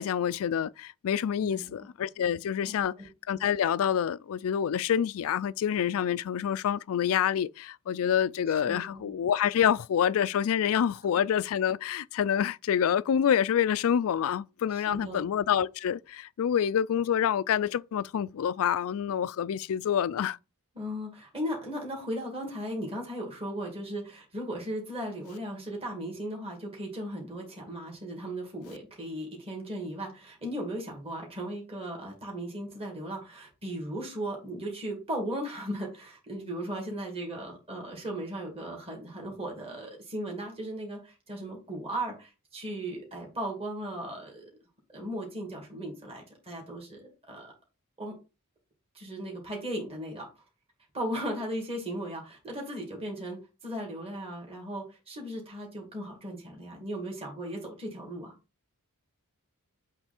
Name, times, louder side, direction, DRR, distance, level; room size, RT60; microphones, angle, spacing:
voice 1, 0.0-2.9 3.3-20.4, left 9 dB, 65° left, 0.3 m, -27 dB
voice 2, 1.4-1.7 2.7-3.1 8.7-9.1 14.7-15.2 20.8-44.4 44.9-47.5 48.0-48.1 48.9-50.3 50.9-53.4 53.6-58.3, right 1 dB, 25° right, 2.3 m, -37 dB
8.0 x 3.3 x 4.3 m
head